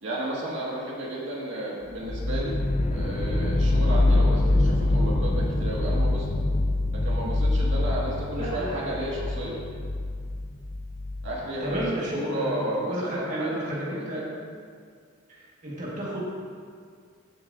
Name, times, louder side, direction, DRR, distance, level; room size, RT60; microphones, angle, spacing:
voice 1, 0.0-2.6 2.9-6.3 6.9-9.6 11.2-11.8 12.1-13.6 13.9-14.3, right 1 dB, 70° right, -5 dB, 2.0 m, -32 dB
sound 1, 2.0-11.9, left 2 dB, 35° left, 0.6 m, -25 dB
voice 2, 8.4-8.9 9.4-9.6 11.6-14.2 15.3-16.2, right 1 dB, 40° right, -6 dB, 1.7 m, -32 dB
15.0 x 6.9 x 2.7 m, 2.1 s
head